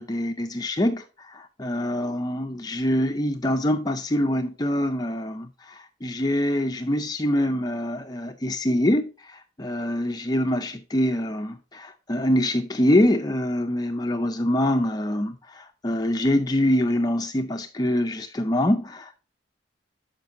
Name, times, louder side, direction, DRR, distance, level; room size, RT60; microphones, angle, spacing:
voice 1, 0.0-19.2, left 1 dB, 20° left, 0.5 m, -25 dB
11.5 x 5.1 x 2.6 m
head